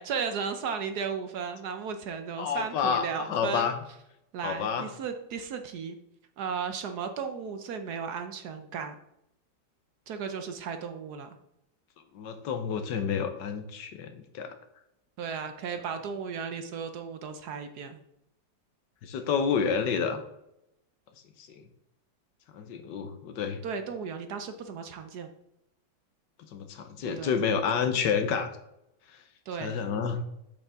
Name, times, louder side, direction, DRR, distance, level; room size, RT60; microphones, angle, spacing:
voice 1, 0.0-3.7 4.3-6.0 6.4-9.0 10.1-11.3 15.2-18.0 23.6-25.3 27.0-27.3 29.5-29.8, right 6 dB, 65° right, 7 dB, 1.1 m, -35 dB
voice 2, 2.4-3.7 4.4-4.9 12.1-14.5 19.0-20.2 21.4-21.6 22.5-23.6 26.5-28.5 29.6-30.2, left 6 dB, 70° left, 8 dB, 1.5 m, -29 dB
7.8 x 6.7 x 3.5 m, 0.81 s
omnidirectional pair, 2.0 m